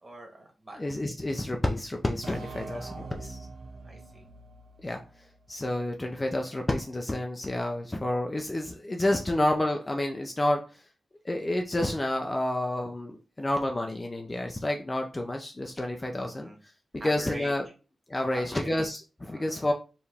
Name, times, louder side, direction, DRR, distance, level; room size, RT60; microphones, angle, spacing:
voice 1, 0.0-0.8 3.8-4.2 16.2-16.6 17.0-17.5 18.3-18.8 19.3-19.7, right 1 dB, 25° right, 1 dB, 1.5 m, -43 dB
voice 2, 0.8-3.4 4.8-5.0 5.5-10.8 11.2-16.5 17.0-17.6 18.1-19.7, left 1 dB, 20° left, 2 dB, 0.5 m, -29 dB
sound 1, 2.2-5.8, right 3 dB, 80° right, 0.7 m, -44 dB
4.6 x 3.0 x 3.4 m, 0.33 s
wide cardioid pair, 140°, 0 cm